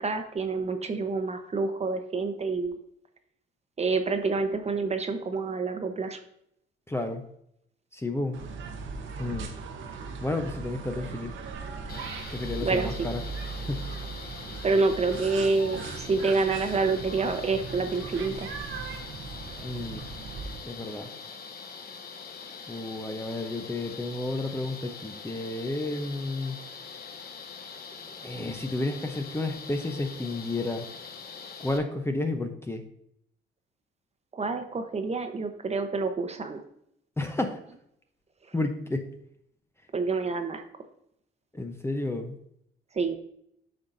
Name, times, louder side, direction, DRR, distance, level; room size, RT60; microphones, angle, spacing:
voice 1, 0.0-2.8 3.8-6.2 12.6-12.9 14.6-18.5 34.3-36.6 39.9-40.6 42.9-43.2, right 4 dB, 35° right, 7 dB, 1.0 m, -27 dB
voice 2, 6.9-7.2 7.9-8.4 9.2-9.5 10.2-11.3 12.3-13.2 13.6-13.8 19.6-20.1 20.6-21.1 22.7-26.6 28.2-30.9 31.6-32.8 37.2-37.6 38.5-39.1 41.5-42.4, left 2 dB, 10° left, 5 dB, 0.8 m, -31 dB
sound 1, 8.3-20.6, right 4 dB, 75° right, 1.0 m, -38 dB
sound 2, 11.9-31.8, left 5 dB, 50° left, 1.0 m, -43 dB
8.7 x 5.7 x 2.7 m, 0.72 s
cardioid pair, 90°, 20 cm